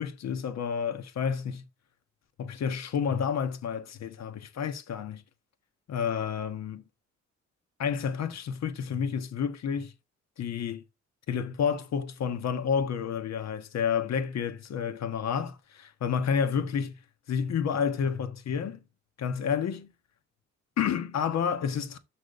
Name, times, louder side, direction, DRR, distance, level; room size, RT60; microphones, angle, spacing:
voice 1, 0.0-1.6 2.4-5.2 5.9-6.8 7.8-9.9 10.4-10.8 11.3-17.0 17.3-18.8 19.2-19.9 20.8-22.0, left 7 dB, 60° left, 1.4 m, -30 dB
6.9 x 6.2 x 3.8 m
cardioid pair, 90°, 30 cm